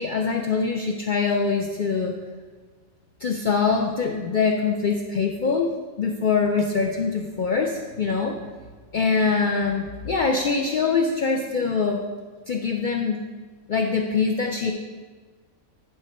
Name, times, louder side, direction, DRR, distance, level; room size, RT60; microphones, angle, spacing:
voice 1, 0.0-2.2 3.2-5.7 6.0-8.4 8.9-12.0 12.5-13.2 13.7-14.7, left 5 dB, 85° left, 2 dB, 0.4 m, -23 dB
9.5 x 4.1 x 5.2 m, 1.4 s
omnidirectional pair, 1.5 m